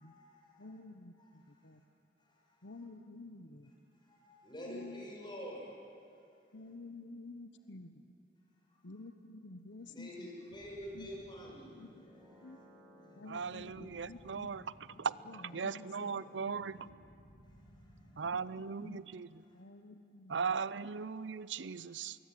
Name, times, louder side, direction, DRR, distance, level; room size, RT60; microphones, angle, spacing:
voice 1, 0.0-0.6 2.2-2.6 4.0-5.7 8.7-8.8 9.8-11.8 13.9-14.3 17.8-18.1, equal, 25° left, -2 dB, 6.8 m, -48 dB
voice 2, 0.6-1.8 2.6-3.7 4.7-5.0 6.5-8.1 8.8-10.3 10.9-11.2 11.8-12.1 12.4-12.6 13.2-17.1 18.2-19.0 19.5-20.6, left 2 dB, 80° left, 10 dB, 1.1 m, -51 dB
sound 1, 10.5-18.7, equal, 15° right, 6.1 m, -59 dB
voice 3, 13.3-14.6 15.0-15.1 15.5-16.7 18.2-19.3 20.3-22.2, right 5 dB, 85° right, 18 dB, 0.6 m, -38 dB
25.0 x 23.0 x 9.4 m, 2.6 s
head